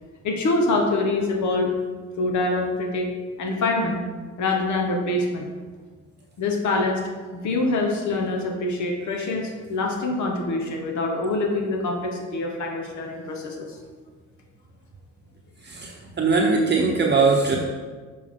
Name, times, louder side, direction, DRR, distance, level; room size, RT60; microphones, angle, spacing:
voice 1, 0.2-1.8 2.2-3.1 3.4-4.0 4.4-5.5 6.4-7.0 7.3-13.8, left 2 dB, 70° left, 2 dB, 1.1 m, -25 dB
voice 2, 15.6-17.6, right 4 dB, 35° right, -1 dB, 0.8 m, -21 dB
7.1 x 4.4 x 3.7 m, 1.5 s
cardioid pair, 90°, 30 cm